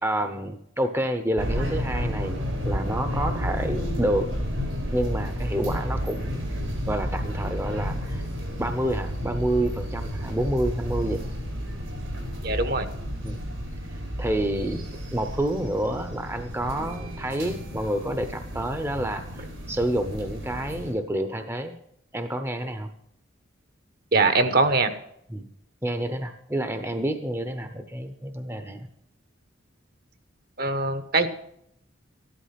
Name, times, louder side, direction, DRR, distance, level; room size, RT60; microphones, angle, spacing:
voice 1, 0.0-4.3 4.9-6.5 6.9-8.3 8.6-11.3 13.2-13.4 14.2-14.8 15.1-21.8 22.1-22.9 25.3-25.5 25.8-28.9, right 1 dB, 10° right, 8 dB, 0.8 m, -28 dB
sound 1, 1.4-20.9, equal, 85° right, 4.7 m, -31 dB
voice 2, 12.4-12.9 24.1-24.9 30.6-31.3, right 3 dB, 50° right, 11 dB, 1.1 m, -22 dB
13.5 x 11.5 x 5.8 m, 0.72 s
head